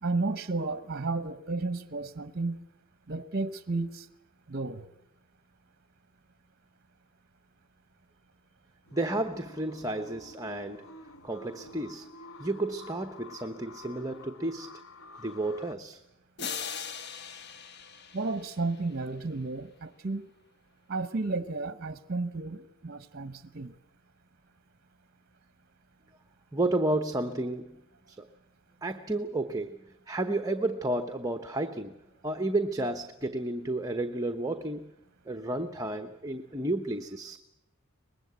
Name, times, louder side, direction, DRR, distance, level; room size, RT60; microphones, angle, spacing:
voice 1, 0.0-2.6 3.1-4.1 4.5-4.9 18.1-20.3 20.9-23.8, right 3 dB, 45° right, 1.0 m, -33 dB
sound 1, 8.9-15.7, left 2 dB, 80° left, 1.4 m, -49 dB
voice 2, 8.9-10.9 11.2-12.1 12.4-14.8 15.2-16.0 26.5-27.8 28.1-28.3 28.8-29.8 30.1-32.0 32.2-34.9 35.3-37.4, right 2 dB, 15° right, 1.0 m, -32 dB
sound 2, 16.4-19.2, left 6 dB, 55° left, 1.5 m, -40 dB
24.5 x 20.5 x 8.2 m
head